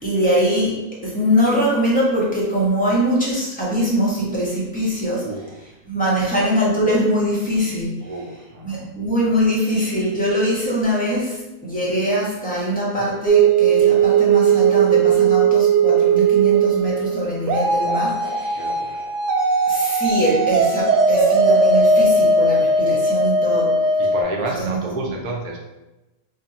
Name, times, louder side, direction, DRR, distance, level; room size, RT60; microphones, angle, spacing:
voice 1, 0.0-5.3 5.9-7.9 8.6-18.6 19.7-23.7 24.6-24.8, equal, 5° left, -6 dB, 0.9 m, -22 dB
voice 2, 5.2-5.6 6.2-6.3 8.0-8.9 18.5-19.0 23.5-23.7 24.0-25.6, right 2 dB, 65° right, -1 dB, 1.1 m, -30 dB
sound 1, 13.3-24.2, right 4 dB, 85° right, 1.2 m, -17 dB
4.9 x 2.6 x 2.8 m, 1.0 s
omnidirectional pair, 1.8 m